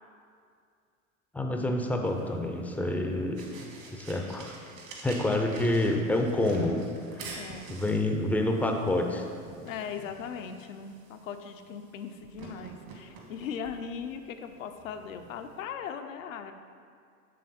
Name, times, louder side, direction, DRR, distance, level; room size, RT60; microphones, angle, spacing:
voice 1, 1.3-3.5 3.9-4.5 5.0-6.8 7.1-7.4 7.7-9.2, left 1 dB, 5° left, 3 dB, 0.4 m, -28 dB
sound 1, 2.0-15.6, right 4 dB, 65° right, 1.4 m, -48 dB
voice 2, 7.3-7.7 9.6-16.5, left 7 dB, 75° left, 7 dB, 0.6 m, -39 dB
7.6 x 3.5 x 4.1 m, 2.2 s
hypercardioid pair, 85°, 40 cm